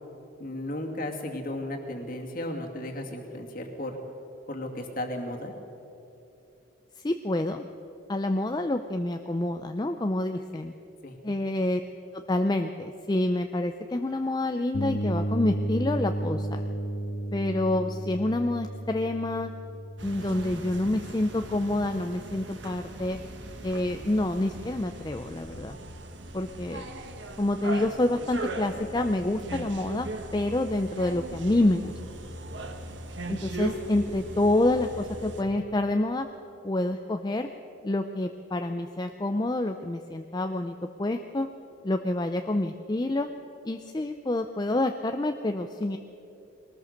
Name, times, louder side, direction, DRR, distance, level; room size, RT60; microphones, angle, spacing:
voice 1, 0.4-4.0 4.5-5.5 11.0-11.1, left 1 dB, 45° left, 1 dB, 2.2 m, -34 dB
voice 2, 7.0-7.6 8.1-10.7 11.2-11.8 12.1-16.6 17.3-19.5 20.0-23.2 23.6-25.8 26.3-26.8 27.4-31.9 33.3-36.3 36.6-37.5 37.8-41.5 41.8-43.3 43.6-46.0, left 1 dB, 20° left, 6 dB, 0.5 m, -27 dB
sound 1, 14.7-22.5, right 1 dB, 70° left, 1.4 m, -34 dB
sound 2, 20.0-35.4, right 1 dB, 60° right, 1.5 m, -39 dB
21.5 x 18.5 x 6.5 m, 2.9 s
head